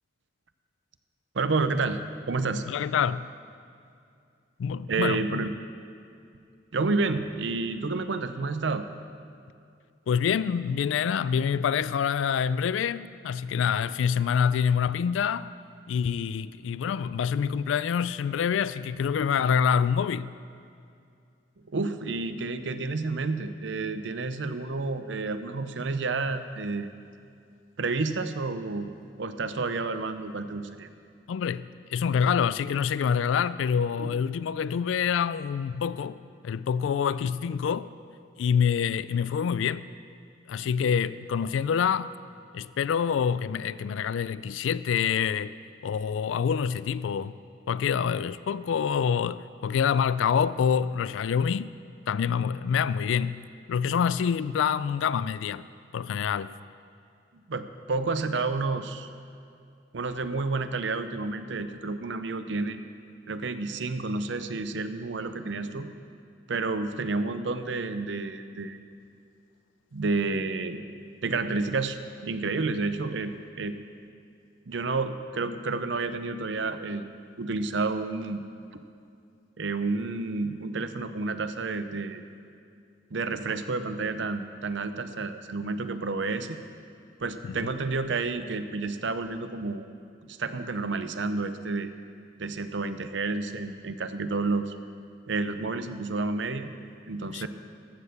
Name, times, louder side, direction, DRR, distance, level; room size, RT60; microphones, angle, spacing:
voice 1, 1.3-2.0 2.3-2.6 4.9-5.6 6.7-8.9 21.7-26.9 27.8-28.9 29.2-30.9 34.0-34.1 57.5-59.1 59.9-62.8 63.3-65.9 66.5-68.8 69.9-70.8 71.2-72.0 72.2-73.8 74.7-77.1 77.4-78.4 79.6-82.2 83.1-86.6 87.2-89.9 90.3-91.9 92.4-94.8 95.3-96.7 97.1-97.5, right 3 dB, 75° right, 0.6 m, -30 dB
voice 2, 2.7-3.3 4.6-5.5 10.1-15.5 15.9-20.3 31.3-36.2 36.4-37.9 38.4-39.8 40.5-42.1 42.5-45.5 45.8-47.3 47.7-51.7 52.1-55.6 55.9-56.5 87.4-87.7 97.3-97.5, left 7 dB, 90° left, 0.3 m, -26 dB
14.0 x 6.5 x 6.7 m
head